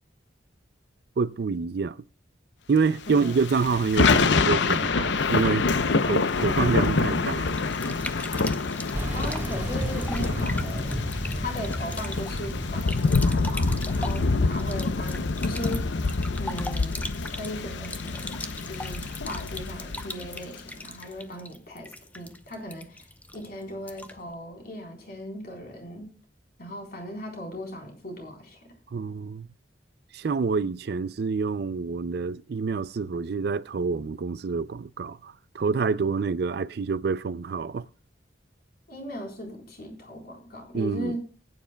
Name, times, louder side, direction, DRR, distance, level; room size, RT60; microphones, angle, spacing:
voice 1, 1.2-2.0 2.7-5.7 6.0-7.6 28.9-29.5 30.1-37.9 40.7-41.2, right 5 dB, 55° right, 0.4 m, -27 dB
Thunder / Rain, 3.1-20.6, left 4 dB, 70° left, 0.6 m, -26 dB
voice 2, 3.1-3.4 9.1-10.9 11.3-15.9 16.4-23.1 23.3-26.1 26.6-28.6 38.9-41.2, equal, 50° left, 3.9 m, -38 dB
sound 1, 7.5-24.3, left 2 dB, 10° left, 0.6 m, -40 dB
sound 2, 8.9-15.2, equal, 10° right, 1.4 m, -33 dB
19.5 x 9.4 x 2.2 m
head